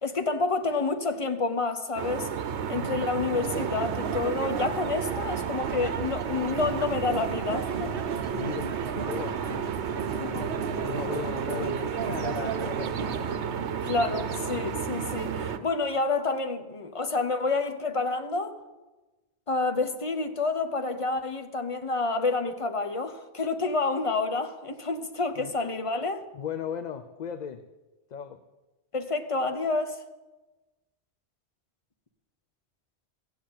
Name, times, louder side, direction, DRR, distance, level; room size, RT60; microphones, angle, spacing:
voice 1, 0.0-2.3 2.7-7.9 10.2-10.4 13.8-18.6 19.5-26.2 28.9-30.0, left 3 dB, 30° left, 1.0 m, -29 dB
sound 1, 2.0-15.6, right 7 dB, 80° right, 1.0 m, -32 dB
sound 2, 3.3-13.3, right 6 dB, 55° right, 1.0 m, -36 dB
voice 2, 8.3-9.7 10.1-10.5 10.8-13.2 25.4-25.5 26.3-27.6 28.1-28.4, left 7 dB, 50° left, 0.6 m, -37 dB
15.0 x 7.7 x 8.6 m
omnidirectional pair, 1.1 m